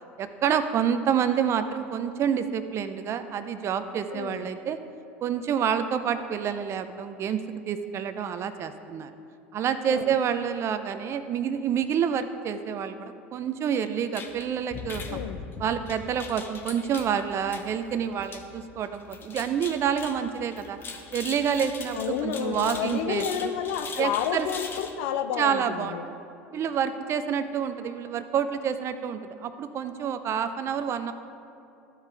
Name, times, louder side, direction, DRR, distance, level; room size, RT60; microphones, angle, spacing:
voice 1, 0.2-4.8 5.2-9.1 9.5-15.2 15.6-20.8 21.1-23.5 24.0-24.5 25.4-26.2 26.5-31.1, right 8 dB, 40° right, 10 dB, 0.5 m, -28 dB
voice 2, 4.1-4.5 9.9-10.1 15.1-15.4 21.9-26.0, left 8 dB, 70° left, 8 dB, 0.6 m, -30 dB
sound 1, 14.1-24.9, left 4 dB, 30° left, 0.9 m, -41 dB
13.5 x 4.9 x 3.3 m, 2.7 s
hypercardioid pair, 80°, 7 cm